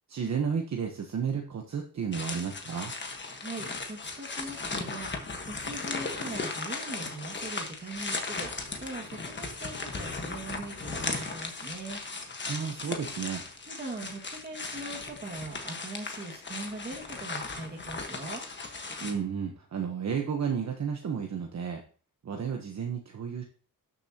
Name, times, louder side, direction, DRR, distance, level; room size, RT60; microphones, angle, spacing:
voice 1, 0.1-2.9 12.4-13.4 19.0-21.8 22.2-23.4, right 6 dB, 50° right, 3 dB, 1.1 m, -32 dB
sound 1, 2.1-19.1, left 3 dB, 30° left, 1.4 m, -37 dB
voice 2, 3.3-8.5 8.8-12.5 13.7-18.4, right 2 dB, 25° right, 0 dB, 2.0 m, -41 dB
12.0 x 7.0 x 2.9 m, 0.40 s
wide cardioid pair, 145°, 35 cm